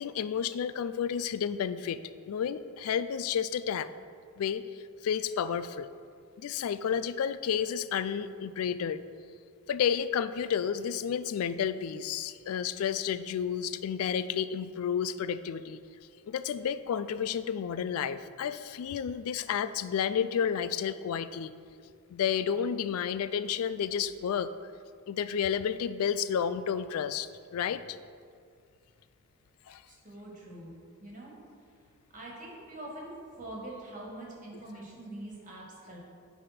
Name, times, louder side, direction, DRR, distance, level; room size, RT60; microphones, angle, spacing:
voice 1, 0.0-3.9 4.4-4.6 5.0-5.9 6.4-9.0 9.7-15.8 16.3-21.5 22.1-24.5 25.1-27.8 29.7-29.8, left 8 dB, 75° left, 13 dB, 0.3 m, -31 dB
voice 2, 29.9-31.3 32.1-36.0, right 1 dB, 35° right, -3 dB, 1.8 m, -44 dB
10.0 x 3.6 x 5.9 m, 2.2 s
head